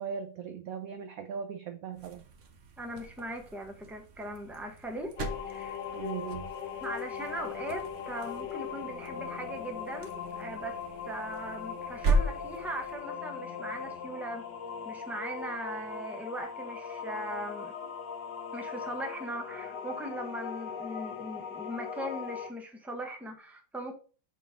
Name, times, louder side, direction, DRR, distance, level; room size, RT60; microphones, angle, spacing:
voice 1, 0.0-2.2 5.9-6.5, right 7 dB, 70° right, 8 dB, 0.9 m, -38 dB
sound 1, 1.9-13.1, right 2 dB, 50° right, 1.0 m, -37 dB
voice 2, 2.8-5.2 5.5-5.8 6.8-14.4 14.8-17.7 18.5-23.9, right 1 dB, ahead, 2 dB, 1.1 m, -39 dB
sound 2, 5.2-22.5, left 7 dB, 70° left, 1.6 m, -39 dB
6.5 x 3.8 x 5.1 m, 0.38 s
omnidirectional pair, 2.0 m